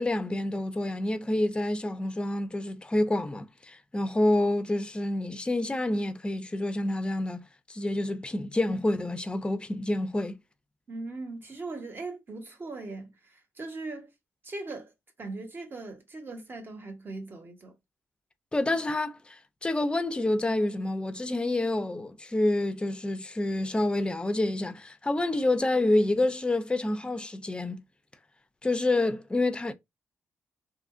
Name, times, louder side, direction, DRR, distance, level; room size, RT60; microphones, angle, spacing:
voice 1, 0.0-10.4 18.5-27.8 28.6-29.7, left 1 dB, 15° left, 0.4 m, -28 dB
voice 2, 10.9-14.1 14.4-14.9 15.2-17.7, right 3 dB, 35° right, 1.0 m, -39 dB
2.8 x 2.4 x 2.4 m
cardioid pair, 70°, 6 cm